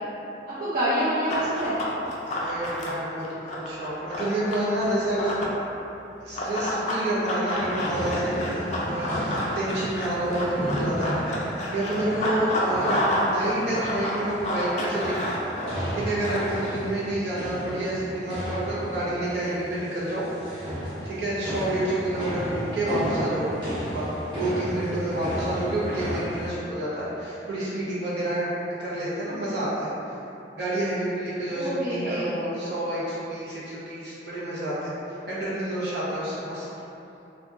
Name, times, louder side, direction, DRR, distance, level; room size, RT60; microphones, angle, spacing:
voice 1, 0.6-1.8 12.2-12.5 31.5-32.3, equal, 50° right, -11 dB, 0.4 m, -27 dB
Run, 1.3-5.6 6.3-13.3 13.6-16.7, left 1 dB, 40° left, 0.3 m, -30 dB
voice 2, 2.2-5.5 6.2-15.3 15.7-20.2 21.0-24.1 24.4-28.5 28.8-29.9 30.5-34.9 35.3-36.7, right 1 dB, 75° right, -9 dB, 0.7 m, -29 dB
sound 1, 7.6-26.5, equal, 25° right, 0.8 m, -34 dB
2.7 x 2.2 x 2.3 m, 2.9 s
head